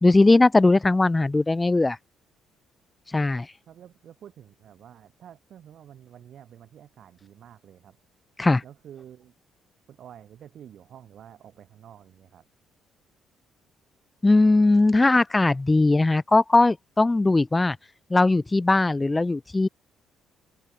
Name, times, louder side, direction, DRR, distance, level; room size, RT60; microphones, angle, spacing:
voice 1, 0.0-2.0 3.1-3.5 8.4-8.6 14.2-17.8 18.1-19.7, left 2 dB, 20° left, 0.6 m, -19 dB
voice 2, 3.7-8.0 8.6-9.3 9.9-12.5, right 10 dB, 65° right, 4.3 m, -48 dB
open air
supercardioid pair, 60°, 0 cm